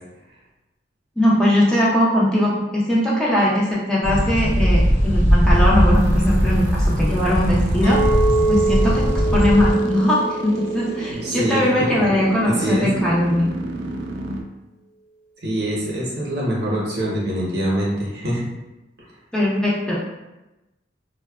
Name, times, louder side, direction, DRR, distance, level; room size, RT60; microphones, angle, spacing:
voice 1, 1.2-8.0 8.5-9.1 9.3-13.5 19.3-19.9, left 1 dB, 5° left, -7 dB, 0.4 m, -20 dB
sound 1, 4.0-9.7, equal, 30° left, 0.8 m, -19 dB
sound 2, 5.9-14.4, right 2 dB, 90° right, 0.3 m, -33 dB
Chink clink, 7.8-12.1 12.6-13.0, right 2 dB, 75° left, 0.6 m, -25 dB
voice 2, 11.1-12.0 12.5-12.9 15.4-18.5, right 1 dB, 60° right, -4 dB, 0.7 m, -24 dB
2.7 x 2.1 x 2.2 m, 1.0 s
head